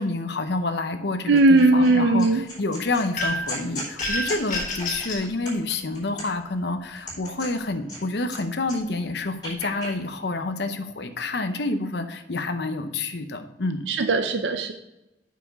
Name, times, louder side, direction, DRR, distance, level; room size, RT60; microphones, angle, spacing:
voice 1, 0.0-13.9, left 2 dB, 65° left, 8 dB, 0.8 m, -28 dB
voice 2, 1.3-2.4 13.9-14.7, right 2 dB, 80° right, 7 dB, 0.6 m, -18 dB
sound 1, 1.4-1.9 2.2-6.5 6.9-8.4 8.6-9.9, left 1 dB, 25° left, 3.3 m, -37 dB
sound 2, 3.2-3.6 4.0-5.3, left 1 dB, 45° left, 1.8 m, -28 dB
7.1 x 6.0 x 4.7 m, 0.94 s
head